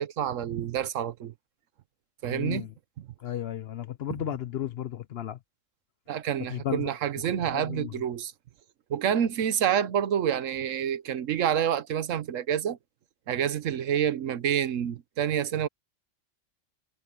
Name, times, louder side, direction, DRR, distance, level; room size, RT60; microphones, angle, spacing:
voice 1, 0.0-1.3 2.2-2.7 3.0-3.1 6.1-8.3 8.9-12.8 13.3-15.7, right 9 dB, 75° right, 1.2 m, -28 dB
voice 2, 2.3-2.7 3.2-5.4 6.5-6.9 7.5-7.9, left 11 dB, 60° left, 0.8 m, -34 dB
omnidirectional pair, 1.3 m